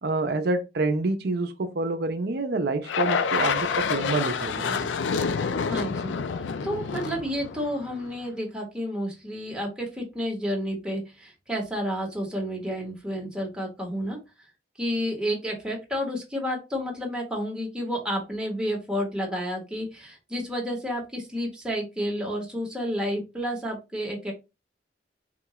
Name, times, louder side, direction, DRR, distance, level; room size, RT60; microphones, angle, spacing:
voice 1, 0.0-4.9, right 2 dB, 60° right, 0.6 m, -27 dB
sound 1, 2.9-8.2, left 5 dB, 90° left, 0.4 m, -28 dB
voice 2, 5.6-6.2 6.6-14.2 14.8-24.3, equal, 5° right, 1.1 m, -30 dB
3.7 x 2.4 x 3.0 m
head